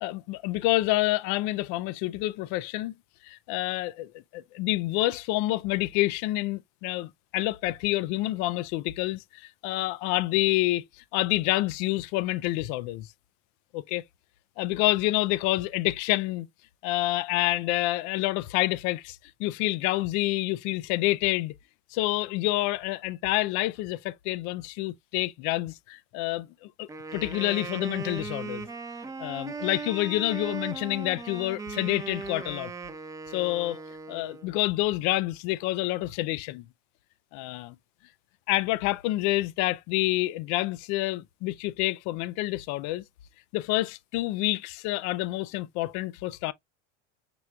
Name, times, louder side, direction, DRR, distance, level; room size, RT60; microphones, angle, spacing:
voice 1, 0.0-2.9 3.2-13.1 13.7-14.0 14.6-16.5 16.8-21.5 21.9-28.7 29.2-32.7 33.3-33.8 34.1-36.6 37.3-37.8 38.5-43.0 43.5-46.5, left 18 dB, 55° left, 0.4 m, -28 dB
Wind instrument woodwind instrument, 26.8-34.5, right 4 dB, 10° right, 0.6 m, -38 dB
6.0 x 3.3 x 2.4 m
supercardioid pair, 110°, 35 cm